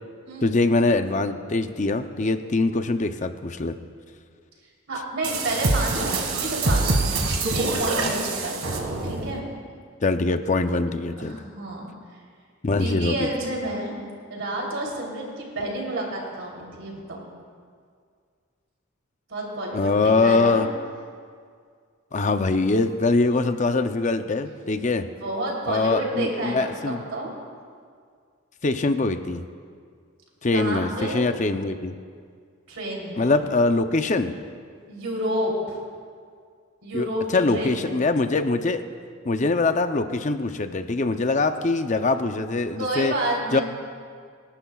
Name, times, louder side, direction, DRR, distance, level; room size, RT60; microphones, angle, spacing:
voice 1, 0.4-3.8 10.0-11.4 12.6-13.3 19.7-20.7 22.1-25.1 25.7-27.0 28.6-29.4 30.4-32.0 33.2-34.4 36.9-38.8 39.2-43.1 43.5-43.6, left 3 dB, 35° left, 9 dB, 0.6 m, -23 dB
voice 2, 4.9-7.2 7.5-9.4 11.2-11.9 12.7-13.9 14.3-17.3 19.3-20.7 25.2-27.3 30.5-31.3 32.7-33.4 34.9-35.8 36.8-38.0 42.8-43.6, right 1 dB, 65° right, -2 dB, 3.3 m, -30 dB
sound 1, 5.2-9.4, right 2 dB, 90° right, 1.8 m, -25 dB
27.0 x 11.5 x 2.4 m, 2.1 s
head